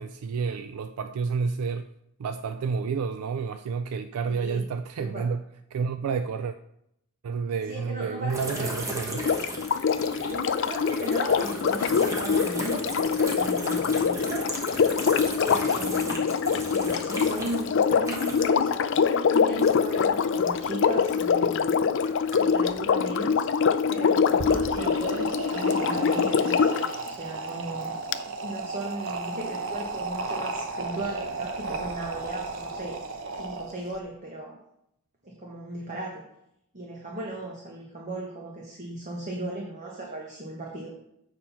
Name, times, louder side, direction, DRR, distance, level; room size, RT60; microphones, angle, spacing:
voice 1, 0.0-1.9 2.2-5.4 5.7-6.6 7.2-9.3, right 5 dB, 85° right, 0.4 m, -30 dB
voice 2, 4.3-4.7 5.0-5.3 7.7-8.7 10.3-14.5 15.4-16.3 16.7-21.7 22.4-23.5 23.9-28.0 28.4-33.0 33.3-34.6 35.2-36.2 36.7-40.9, right 1 dB, 35° right, 1.2 m, -36 dB
sound 1, 8.3-18.7 18.9-21.5 22.0-22.8, right 1 dB, 15° right, 1.2 m, -36 dB
Sink (filling or washing), 9.1-26.9 28.1-28.2, left 6 dB, 55° left, 0.4 m, -24 dB
sound 2, 24.3-34.0, right 3 dB, 60° right, 0.8 m, -34 dB
7.7 x 4.4 x 5.6 m
head